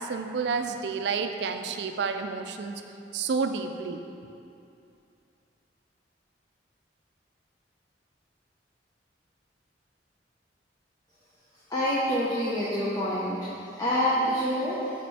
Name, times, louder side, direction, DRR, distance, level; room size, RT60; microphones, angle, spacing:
voice 1, 0.0-2.8 3.1-4.0, right 5 dB, 70° right, 7 dB, 0.3 m, -30 dB
voice 2, 11.7-13.4 13.8-14.8, equal, 20° left, -8 dB, 0.7 m, -26 dB
5.2 x 4.3 x 4.2 m, 2.6 s
head